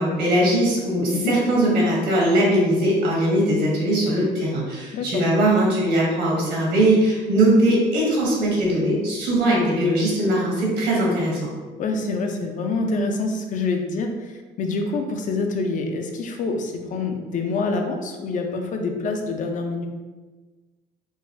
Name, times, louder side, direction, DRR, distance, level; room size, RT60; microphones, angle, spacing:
voice 1, 0.0-11.4, right 1 dB, 85° right, -4 dB, 1.3 m, -20 dB
voice 2, 11.8-19.9, left 3 dB, 50° left, 4 dB, 0.5 m, -26 dB
3.9 x 2.4 x 2.6 m, 1.3 s
cardioid pair, 110°, 17 cm